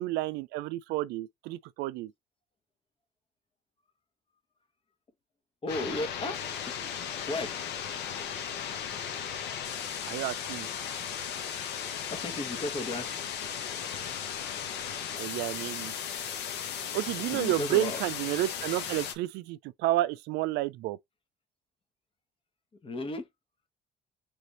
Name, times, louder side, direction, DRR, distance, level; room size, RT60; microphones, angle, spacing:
voice 1, 0.0-2.1 10.1-10.7 15.2-15.9 16.9-21.0, right 16 dB, 90° right, 0.4 m, -30 dB
voice 2, 5.6-6.4 7.3-7.5 12.1-13.2 17.3-18.0 22.8-23.2, left 2 dB, 30° left, 1.1 m, -34 dB
sound 1, 5.7-19.1, left 8 dB, 80° left, 1.0 m, -36 dB
3.4 x 3.4 x 3.9 m
cardioid pair, 110°, 17 cm